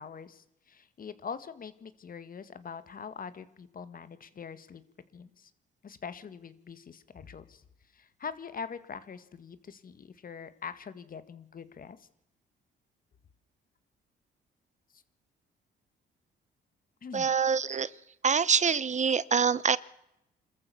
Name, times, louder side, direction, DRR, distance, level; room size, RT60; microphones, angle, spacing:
voice 1, 0.0-4.8 5.1-5.5 5.8-7.6 7.9-12.1 14.9-15.0 17.0-17.3, left 6 dB, 45° left, 13 dB, 1.9 m, -43 dB
voice 2, 17.1-17.9 18.2-19.8, right 6 dB, 35° right, 19 dB, 0.8 m, -25 dB
27.0 x 14.0 x 7.0 m, 0.83 s
cardioid pair, 90°, 20 cm